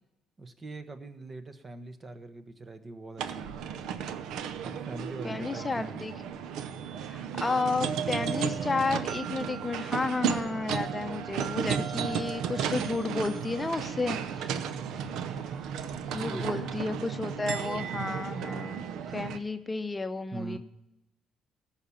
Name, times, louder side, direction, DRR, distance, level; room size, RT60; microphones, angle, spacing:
voice 1, 0.4-3.6 4.6-6.3 16.0-16.8 20.3-20.6, right 3 dB, 35° right, 9 dB, 1.1 m, -43 dB
sound 1, 3.2-19.4, right 8 dB, 75° right, 0.6 m, -34 dB
voice 2, 5.2-6.1 7.1-14.5 16.1-20.6, left 3 dB, 25° left, 9 dB, 0.7 m, -32 dB
sound 2, 11.3-16.9, right 2 dB, 50° right, 2.5 m, -54 dB
14.0 x 5.8 x 7.2 m, 0.92 s
supercardioid pair, 70°, 0 cm